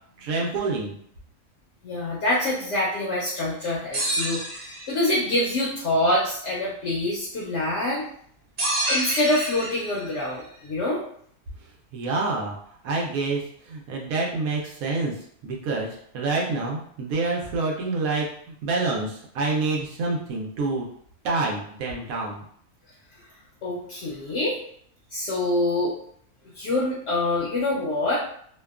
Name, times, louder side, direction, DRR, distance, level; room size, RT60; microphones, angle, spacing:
voice 1, 0.2-1.0 11.9-12.6 12.8-15.2 15.4-20.9 21.2-22.4, right 3 dB, 80° right, -2 dB, 1.0 m, -27 dB
voice 2, 1.8-8.1 8.9-11.0 23.6-24.6 25.1-25.9 26.5-28.2, left 1 dB, 65° left, -5 dB, 0.8 m, -25 dB
sound 1, 3.9-5.2 8.6-10.1, right 1 dB, 45° right, 0.5 m, -28 dB
2.7 x 2.2 x 2.3 m, 0.65 s
omnidirectional pair, 1.5 m